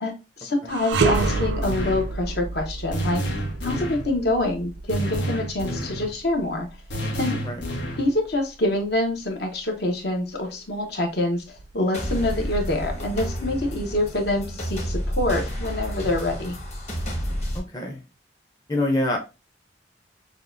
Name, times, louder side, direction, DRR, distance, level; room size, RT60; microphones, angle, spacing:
voice 1, 0.4-3.2 3.6-6.7 7.1-7.4 8.0-16.5, left 1 dB, 60° left, 2 dB, 1.1 m, -26 dB
sound 1, 0.7-9.9 10.3-10.5 11.4-12.3, right 3 dB, 75° right, 0.5 m, -31 dB
sound 2, 0.9-2.1 2.9-4.1 4.9-6.1 6.9-8.1, right 1 dB, 85° left, 1.4 m, -29 dB
sound 3, 11.9-17.6, equal, 40° left, 1.4 m, -30 dB
voice 2, 17.5-18.0 18.7-19.2, left 1 dB, 20° left, 0 dB, 0.7 m, -25 dB
6.4 x 2.4 x 2.6 m, 0.28 s
head